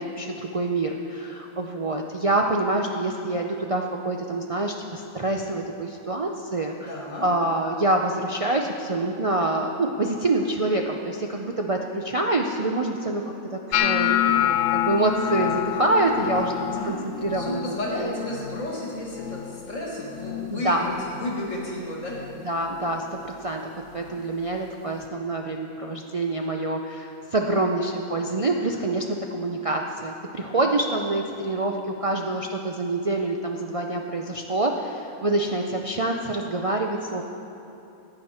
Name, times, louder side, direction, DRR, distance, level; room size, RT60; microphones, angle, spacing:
voice 1, 0.0-6.9 7.2-17.0 17.2-18.1 20.5-20.9 22.4-37.2, right 2 dB, 65° right, 1 dB, 0.3 m, -26 dB
voice 2, 6.8-7.3 16.6-17.0 17.3-22.2, left 1 dB, 65° left, -3 dB, 2.1 m, -32 dB
sound 1, 13.7-19.8 20.1-20.6 21.0-21.5 22.1-22.3 24.1-24.2, left 12 dB, 85° left, 1.0 m, -27 dB
15.0 x 9.0 x 4.3 m, 3.0 s
omnidirectional pair, 1.4 m